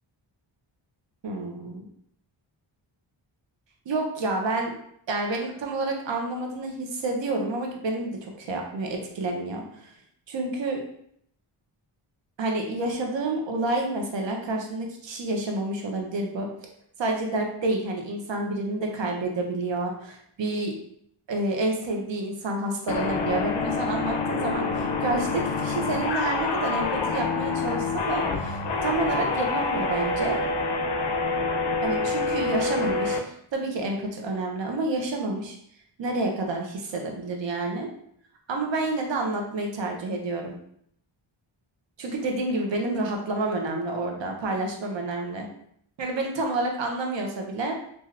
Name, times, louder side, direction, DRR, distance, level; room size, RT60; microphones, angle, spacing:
voice 1, 1.2-1.8 3.9-4.7 5.1-9.9 10.3-10.8 12.4-16.5 17.0-20.7 21.3-30.4 31.8-35.6 36.0-37.9 38.5-40.5 42.0-45.5 46.0-47.7, right 2 dB, 65° right, 2 dB, 0.7 m, -29 dB
sound 1, 22.9-33.2, left 3 dB, 55° left, 0.5 m, -27 dB
3.2 x 2.7 x 2.4 m, 0.69 s
wide cardioid pair, 90°, 49 cm